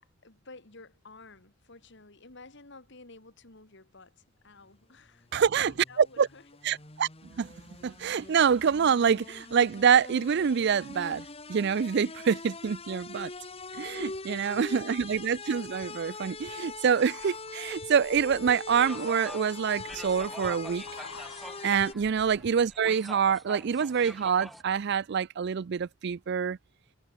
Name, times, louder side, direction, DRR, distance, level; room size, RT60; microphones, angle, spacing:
voice 1, 0.0-6.5 14.2-14.8 21.9-22.1, left 3 dB, 60° left, 2.6 m, -52 dB
sound 1, 5.2-21.9, left 3 dB, 30° left, 2.0 m, -43 dB
voice 2, 5.3-5.7 6.2-6.3 6.6-7.1 7.4-7.5 7.8-13.3 13.8-20.8 21.6-26.6, right 7 dB, 55° right, 0.4 m, -26 dB
sound 2, 13.8-14.6 15.0-22.9 23.2-23.3, left 3 dB, 80° left, 2.7 m, -52 dB
sound 3, 18.8-24.6, equal, ahead, 1.0 m, -45 dB
head